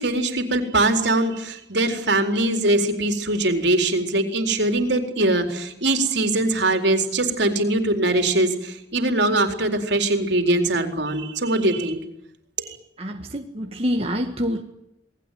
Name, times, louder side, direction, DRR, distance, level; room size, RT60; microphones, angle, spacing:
voice 1, 0.0-12.0 12.6-12.8, right 2 dB, 65° right, 5 dB, 4.3 m, -22 dB
voice 2, 13.0-14.6, equal, 30° right, 2 dB, 1.8 m, -26 dB
28.0 x 20.0 x 9.4 m, 0.80 s
head